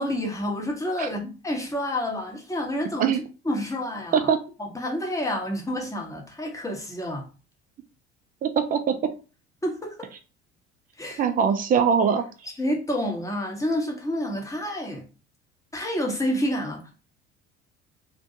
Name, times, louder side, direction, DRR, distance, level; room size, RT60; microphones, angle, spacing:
voice 1, 0.0-4.3 4.6-7.3 9.6-10.1 11.0-11.2 12.6-15.1 15.7-16.9, left 1 dB, 10° left, 0.8 m, -29 dB
voice 2, 8.4-8.8 11.2-12.2, right 7 dB, 25° right, 0.4 m, -21 dB
2.5 x 2.2 x 2.6 m
figure-of-eight pair, 60°, 34 cm